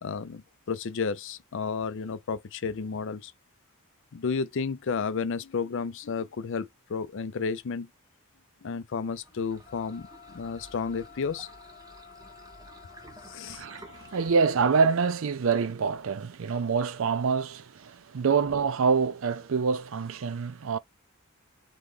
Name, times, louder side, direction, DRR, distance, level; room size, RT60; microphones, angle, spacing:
voice 1, 0.0-3.3 4.1-7.9 8.6-10.1 10.3-11.5 13.2-13.6, left 5 dB, 65° left, 0.5 m, -32 dB
sound 1, 9.0-15.0, right 2 dB, 15° right, 0.7 m, -52 dB
sound 2, 9.7-14.7, left 7 dB, 45° left, 0.8 m, -51 dB
voice 2, 13.5-20.8, right 5 dB, 65° right, 0.5 m, -26 dB
3.8 x 3.0 x 3.7 m
head